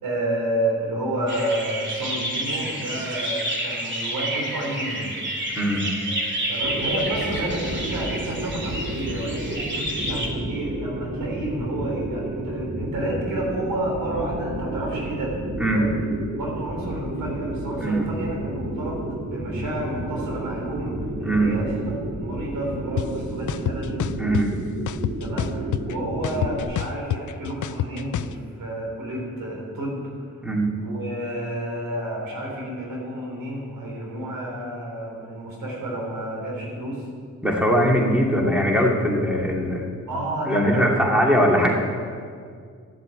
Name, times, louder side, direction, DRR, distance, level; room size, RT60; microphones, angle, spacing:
voice 1, 0.0-5.1 6.5-15.3 15.7-15.9 16.4-24.0 25.2-30.0 30.8-37.0 40.1-41.5, right 1 dB, 85° right, -2 dB, 3.8 m, -30 dB
sound 1, 1.3-10.3, right 1 dB, 35° right, 2.7 m, -29 dB
sound 2, 6.6-26.6, right 1 dB, 50° right, 2.6 m, -31 dB
voice 2, 21.2-21.5 24.2-24.5 30.4-30.7 37.4-39.8 40.5-41.7, equal, 5° right, -1 dB, 2.6 m, -21 dB
sound 3, 23.0-23.1 23.5-24.4 24.9-25.9 26.2-28.3, left 11 dB, 65° left, 0.5 m, -26 dB
13.0 x 8.0 x 8.5 m, 2.1 s
cardioid pair, 70°, 33 cm